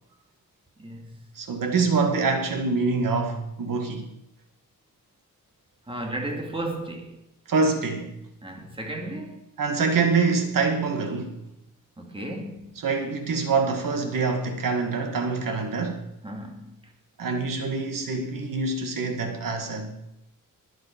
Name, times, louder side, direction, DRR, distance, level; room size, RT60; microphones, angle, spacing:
voice 1, 0.8-1.2 5.8-7.2 8.4-9.5 12.0-12.8 16.2-16.9, right 1 dB, 15° right, 2.3 m, -35 dB
voice 2, 1.4-4.1 7.5-8.1 9.6-11.4 12.8-16.1 17.2-19.9, right 4 dB, 80° right, 2.2 m, -25 dB
22.5 x 7.7 x 5.3 m
wide cardioid pair, 155°, 33 cm